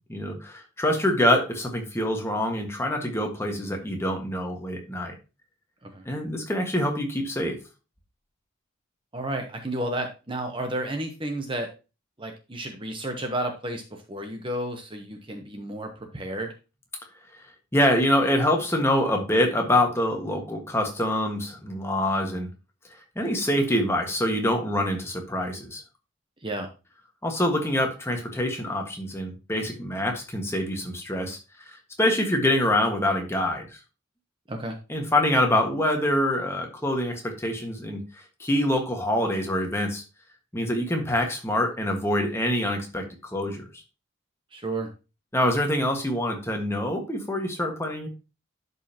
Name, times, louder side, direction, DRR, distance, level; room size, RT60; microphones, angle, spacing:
voice 1, 0.1-5.1 6.0-7.6 17.7-22.5 23.1-25.8 27.2-31.4 31.7-33.7 34.9-38.0 38.4-40.0 40.5-43.7 45.3-48.1, left 1 dB, 15° left, 2 dB, 1.6 m, -25 dB
voice 2, 9.1-11.7 12.2-16.5 26.4-26.7 34.5-34.7 44.5-44.9, right 1 dB, 25° right, 4 dB, 1.0 m, -32 dB
11.5 x 5.5 x 2.9 m, 0.30 s
head